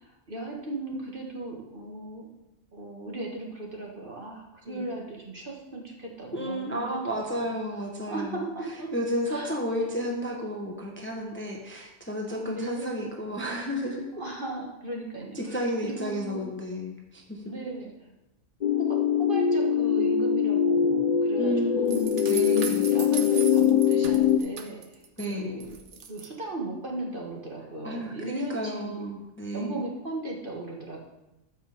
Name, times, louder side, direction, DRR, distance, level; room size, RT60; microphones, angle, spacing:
voice 1, 0.0-2.3 2.7-7.4 8.1-8.9 9.3-9.6 10.1-10.2 12.3-13.0 14.2-16.5 17.5-17.9 18.7-22.1 22.5-29.1 29.5-31.0, right 2 dB, 45° right, -1 dB, 1.9 m, -37 dB
voice 2, 6.3-8.5 8.9-14.1 15.3-17.4 21.4-22.9 25.2-25.6 27.8-29.8, equal, 10° left, 0 dB, 1.1 m, -32 dB
sound 1, 18.6-24.4, left 8 dB, 55° left, 0.4 m, -23 dB
sound 2, 21.9-25.3 25.6-26.3, right 6 dB, 70° right, 1.3 m, -38 dB
13.5 x 5.7 x 5.0 m, 0.96 s
omnidirectional pair, 1.3 m